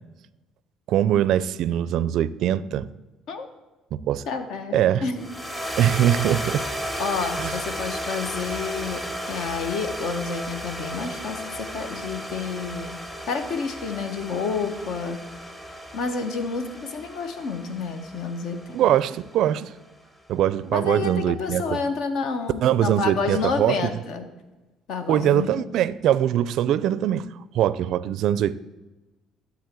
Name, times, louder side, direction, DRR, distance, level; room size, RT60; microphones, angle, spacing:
voice 1, 0.9-2.9 3.9-4.2 4.7-5.0 5.8-6.6 7.4-7.6 18.7-19.7 20.3-21.8 22.6-23.9 25.1-27.3 27.5-28.5, right 11 dB, 60° right, 0.4 m, -22 dB
voice 2, 4.3-5.3 7.0-13.0 13.3-15.2 15.9-18.7 20.7-24.3 24.9-25.5, left 5 dB, 65° left, 1.2 m, -29 dB
sound 1, 5.2-19.6, equal, 10° left, 0.9 m, -34 dB
12.5 x 4.1 x 8.1 m
cardioid pair, 150°, 0 cm